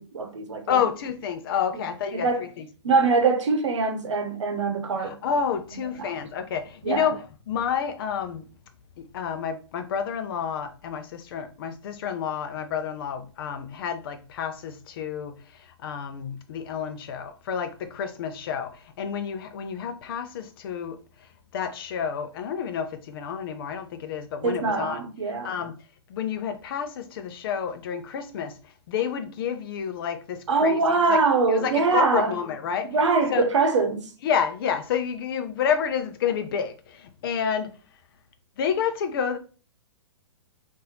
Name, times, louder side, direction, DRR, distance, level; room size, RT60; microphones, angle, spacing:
voice 1, 0.0-0.8 2.1-2.4 2.8-5.2 6.0-6.1 6.8-7.1 24.4-25.5 30.5-32.3 32.9-34.1, right 4 dB, 80° right, 0.8 m, -23 dB
voice 2, 0.7-2.7 5.0-7.2 7.5-8.5 9.0-15.4 15.8-21.0 21.5-25.0 25.4-25.7 26.1-28.6 28.9-30.8 31.1-31.2 31.5-32.9 33.3-33.5 34.2-37.7 38.6-39.4, left 7 dB, 50° left, 0.6 m, -29 dB
4.0 x 2.6 x 2.8 m
hypercardioid pair, 140°, 15 cm